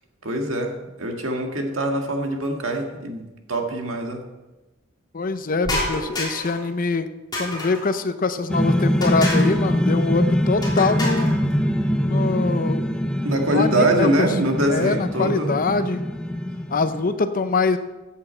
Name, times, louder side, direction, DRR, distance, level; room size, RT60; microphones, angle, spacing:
voice 1, 0.2-4.2 13.2-15.6, right 1 dB, 75° right, 3 dB, 1.7 m, -23 dB
voice 2, 5.1-7.1 7.4-11.3 12.0-12.8 13.5-14.3 14.7-16.0 16.7-17.8, left 3 dB, 45° left, 11 dB, 0.7 m, -23 dB
sound 1, 5.6-6.6 7.3-7.9 9.0-9.6 10.6-11.4, left 1 dB, 20° left, 3.4 m, -28 dB
sound 2, 8.5-17.1, equal, 5° left, 0.5 m, -23 dB
14.5 x 8.4 x 4.4 m, 1.1 s
head